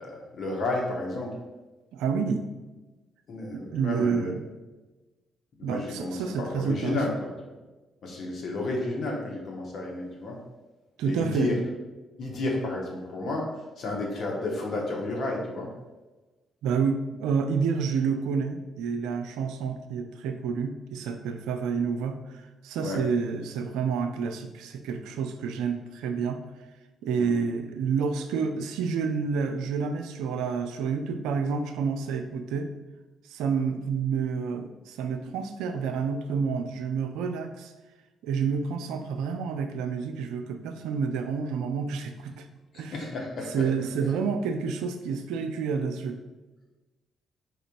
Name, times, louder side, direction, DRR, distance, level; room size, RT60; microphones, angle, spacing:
voice 1, 0.0-1.3 3.3-4.3 5.6-7.5 8.0-10.4 11.0-11.6 12.2-13.5 13.8-15.7 22.8-23.0 27.2-27.4 42.7-43.5, left 2 dB, 55° left, -1 dB, 1.1 m, -32 dB
voice 2, 1.9-2.5 3.5-4.4 5.6-7.0 11.0-11.5 16.6-26.4 27.0-32.7 33.3-37.7 38.2-42.5 42.7-43.0 43.5-46.2, right 5 dB, 75° right, 7 dB, 0.3 m, -29 dB
4.1 x 3.9 x 2.5 m, 1.2 s
hypercardioid pair, 45°, 0 cm